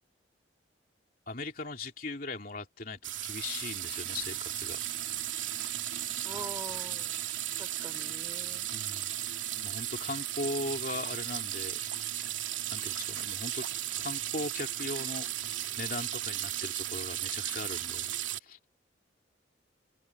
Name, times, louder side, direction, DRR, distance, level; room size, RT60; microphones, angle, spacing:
voice 1, 1.3-4.8 8.7-9.2 9.5-11.8 12.7-13.6 14.0-15.3 15.8-18.1 18.4-18.6, left 2 dB, 45° left, 3.2 m, -39 dB
sound 1, 3.0-18.4, right 12 dB, 85° right, 2.9 m, -35 dB
voice 2, 6.2-7.2 7.6-8.7, right 1 dB, 15° right, 5.3 m, -44 dB
head